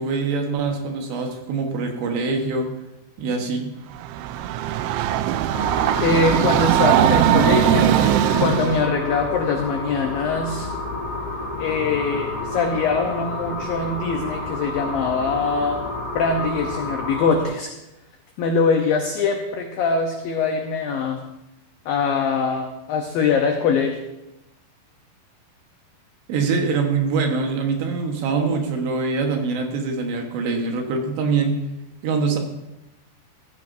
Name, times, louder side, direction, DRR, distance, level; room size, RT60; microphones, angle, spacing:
voice 1, 0.0-2.7 3.2-3.7 26.3-31.6 32.0-32.4, right 4 dB, 70° right, 3 dB, 3.4 m, -24 dB
Train, 4.0-8.9, right 11 dB, 90° right, 3.0 m, -20 dB
sound 1, 5.5-17.4, left 2 dB, 30° left, 4.3 m, -30 dB
voice 2, 6.0-8.1 8.4-10.7 11.6-15.8 16.1-17.7 18.4-21.2 21.9-24.0, left 4 dB, 85° left, 3 dB, 2.0 m, -23 dB
17.0 x 14.0 x 2.7 m, 0.94 s
omnidirectional pair, 5.4 m